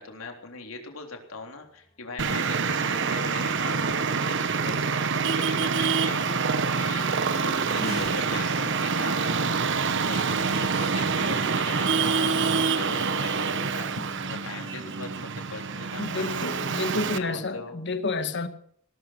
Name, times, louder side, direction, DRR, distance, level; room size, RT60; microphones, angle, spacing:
voice 1, 0.0-16.5 17.2-17.8, left 3 dB, 70° left, 3.7 m, -40 dB
Race car auto racing / Accelerating revving vroom, 1.6-17.7, left 1 dB, 30° left, 3.1 m, -46 dB
Traffic noise roadway noise, 2.2-17.2, right 5 dB, 60° right, 1.1 m, -26 dB
voice 2, 16.0-18.5, left 3 dB, 55° left, 1.8 m, -30 dB
18.5 x 12.5 x 5.8 m
head